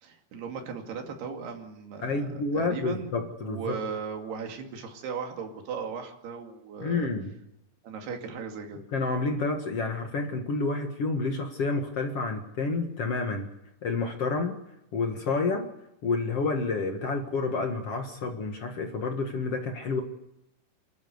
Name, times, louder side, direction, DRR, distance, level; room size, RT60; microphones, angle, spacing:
voice 1, 0.0-3.2 3.4-7.1 7.8-8.8, right 6 dB, 85° right, 4 dB, 4.5 m, -37 dB
voice 2, 2.0-3.8 6.8-7.3 8.9-13.5 13.8-14.6 14.9-15.7 16.0-20.0, left 3 dB, 50° left, 4 dB, 2.1 m, -29 dB
29.0 x 13.0 x 8.0 m, 0.86 s
omnidirectional pair, 4.5 m